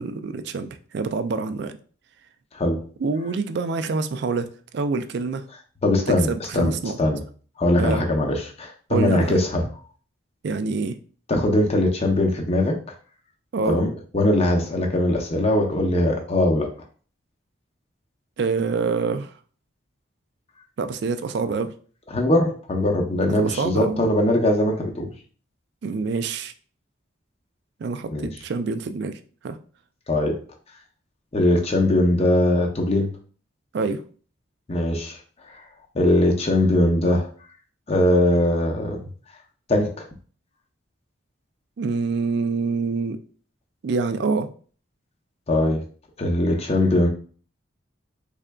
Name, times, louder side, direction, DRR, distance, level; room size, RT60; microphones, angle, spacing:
voice 1, 0.0-1.8 3.0-5.4 6.1-7.0 7.8-8.0 8.9-9.4 10.4-11.0 13.5-13.8 18.4-19.3 20.8-21.7 23.4-24.0 25.8-26.5 27.8-29.6 33.7-34.0 41.8-43.2 43.8-44.5, right 4 dB, 55° right, 10 dB, 0.3 m, -26 dB
voice 2, 5.8-7.2 7.6-9.6 11.3-12.8 13.7-13.9 14.1-16.7 22.1-25.1 28.1-28.3 30.1-30.4 31.3-33.1 34.7-35.2 35.5-35.6 35.9-37.3 37.9-39.0 39.7-40.1 45.5-45.8 46.2-47.1, left 1 dB, 30° left, 2 dB, 0.6 m, -21 dB
3.7 x 3.3 x 2.2 m, 0.41 s
head